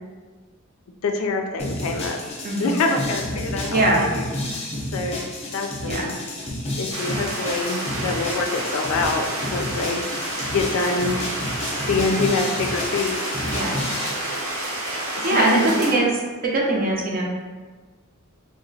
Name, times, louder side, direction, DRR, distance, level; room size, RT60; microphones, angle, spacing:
voice 1, 1.0-2.2 2.6-4.7 4.9-5.2 5.5-6.1 6.8-10.0 10.5-11.2 11.8-13.8 15.1-15.7, left 3 dB, 80° left, 3 dB, 0.4 m, -26 dB
sound 1, 1.6-14.1, left 1 dB, 30° left, 0.7 m, -31 dB
sound 2, 6.9-15.9, right 1 dB, 85° right, 0.9 m, -29 dB
voice 2, 15.2-16.1 16.4-17.2, right 2 dB, 45° right, -2 dB, 0.6 m, -21 dB
2.9 x 2.1 x 3.9 m, 1.4 s
head